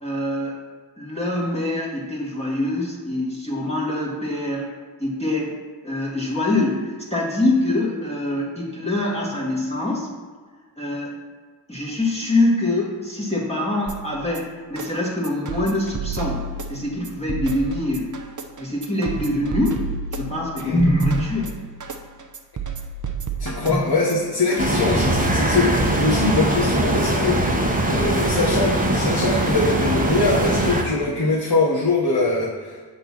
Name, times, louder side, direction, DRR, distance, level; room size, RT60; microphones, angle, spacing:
voice 1, 0.0-0.6 1.0-4.7 5.0-5.6 5.8-10.1 10.8-11.1 11.7-18.1 18.6-19.8 20.1-21.5 23.7-23.8, left 1 dB, 15° left, -6 dB, 1.5 m, -24 dB
sound 1, 13.9-26.8, right 4 dB, 40° right, 0.7 m, -32 dB
voice 2, 23.4-32.8, left 3 dB, 50° left, -6 dB, 1.2 m, -22 dB
sound 2, 24.6-30.8, right 1 dB, 15° right, 1.0 m, -21 dB
7.1 x 3.9 x 6.0 m, 1.5 s
wide cardioid pair, 60°, 46 cm